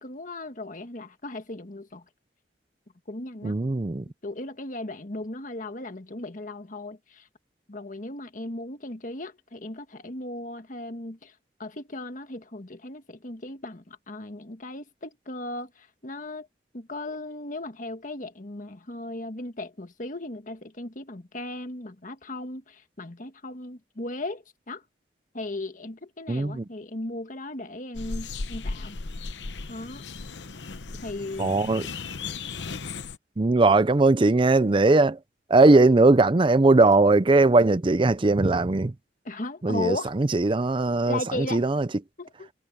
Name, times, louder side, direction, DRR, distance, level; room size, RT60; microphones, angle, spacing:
voice 1, 0.0-2.0 3.1-3.6 4.2-7.3 7.7-11.3 11.6-16.5 16.7-24.8 25.3-29.0 29.7-30.0 31.0-31.5 39.2-40.1 41.0-41.6 42.2-42.5, left 2 dB, 45° left, 1.6 m, -36 dB
voice 2, 3.4-4.0 26.3-26.6 31.4-31.8 33.4-35.2 35.5-38.9 39.6-41.9, right 2 dB, 30° right, 0.5 m, -20 dB
sound 1, 27.9-33.2, left 4 dB, 85° left, 0.9 m, -36 dB
head